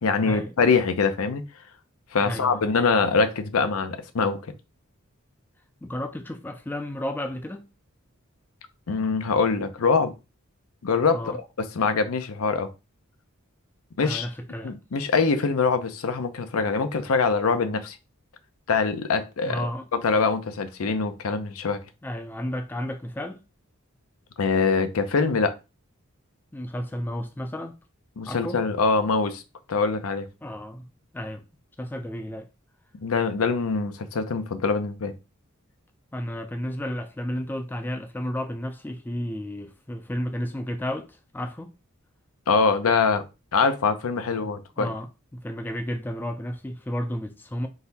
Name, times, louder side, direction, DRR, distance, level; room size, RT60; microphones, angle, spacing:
voice 1, 0.0-1.4 2.1-4.4 8.9-10.1 10.8-11.4 11.8-12.7 14.0-14.3 14.6-18.0 18.7-19.6 19.9-21.8 24.4-25.6 28.2-29.4 29.7-30.3 33.0-35.1 42.5-43.2 43.5-44.9, left 4 dB, 85° left, 0.6 m, -23 dB
voice 2, 2.2-2.6 5.8-7.6 11.1-11.4 14.0-14.7 19.4-19.9 22.0-23.4 26.5-27.8 28.2-28.6 30.4-30.9 31.1-31.4 31.8-32.5 36.1-41.7 44.3-47.7, equal, 10° left, 0.3 m, -32 dB
4.0 x 2.6 x 4.0 m
head